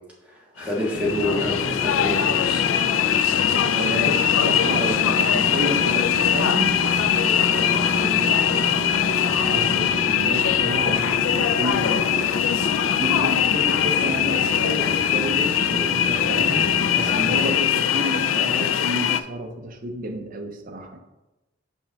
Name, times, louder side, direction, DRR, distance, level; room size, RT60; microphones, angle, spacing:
voice 1, 0.3-2.7, left 1 dB, 5° right, -5 dB, 1.6 m, -27 dB
sound 1, 0.6-19.2, left 9 dB, 80° left, 0.4 m, -21 dB
sound 2, 0.9-17.6, equal, 50° left, 0.8 m, -31 dB
voice 2, 3.5-6.8 7.1-8.7 9.5-12.6 13.0-21.0, right 1 dB, 45° right, 3 dB, 0.8 m, -31 dB
5.7 x 5.3 x 3.5 m, 1.0 s
head